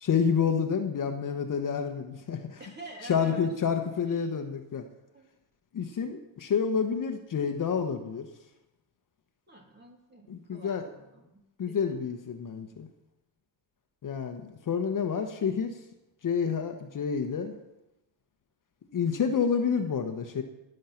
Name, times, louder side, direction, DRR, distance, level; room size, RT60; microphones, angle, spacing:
voice 1, 0.0-2.6 3.1-4.9 5.7-8.3 10.3-10.8 11.6-12.9 14.0-15.7 16.2-17.5 18.9-20.4, left 6 dB, 45° left, 6 dB, 1.2 m, -29 dB
voice 2, 2.6-3.5 4.1-4.3 5.1-5.3 5.9-6.0 9.5-12.0, right 1 dB, 25° right, 1 dB, 2.9 m, -48 dB
19.0 x 6.6 x 5.8 m, 0.94 s
cardioid pair, 90°, 43 cm